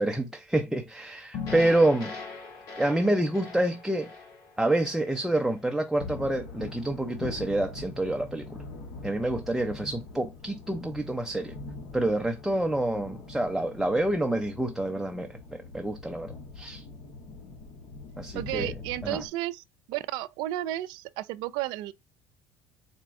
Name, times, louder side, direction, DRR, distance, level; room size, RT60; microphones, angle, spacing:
voice 1, 0.0-2.1 2.8-4.1 4.6-8.6 9.0-11.5 11.9-16.8 18.2-18.7 19.0-19.2, right 1 dB, 5° right, 0.6 m, -27 dB
sound 1, 1.3-5.6, left 5 dB, 55° left, 2.0 m, -40 dB
sound 2, 6.0-19.3, left 3 dB, 75° left, 1.4 m, -43 dB
voice 2, 18.3-21.9, right 15 dB, 65° right, 0.4 m, -33 dB
4.2 x 2.2 x 3.6 m
hypercardioid pair, 70°, 8 cm